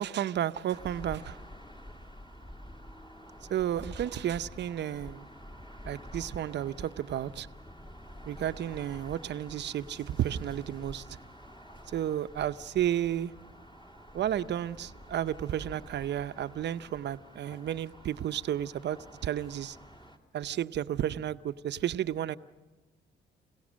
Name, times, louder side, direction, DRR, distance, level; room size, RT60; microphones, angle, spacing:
voice 1, 0.0-1.4 3.5-5.3 5.8-7.5 8.3-11.0 11.9-13.3 14.1-19.8 20.3-22.4, right 11 dB, 60° right, 0.7 m, -32 dB
sound 1, 0.7-20.2, equal, 25° left, 2.5 m, -48 dB
29.5 x 17.0 x 6.3 m
cardioid pair, 90°, 20 cm